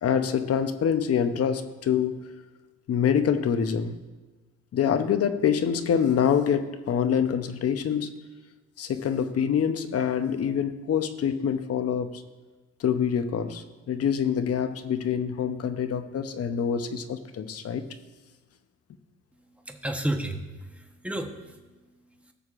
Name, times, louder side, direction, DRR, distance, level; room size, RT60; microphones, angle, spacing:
voice 1, 0.0-2.2 2.9-4.0 4.7-8.1 8.8-12.2 12.8-17.8, left 8 dB, 55° left, 9 dB, 0.7 m, -25 dB
voice 2, 19.7-21.6 22.3-22.4, right 1 dB, 5° right, 4 dB, 1.0 m, -32 dB
18.5 x 6.5 x 2.5 m, 1.2 s
cardioid pair, 90°, 30 cm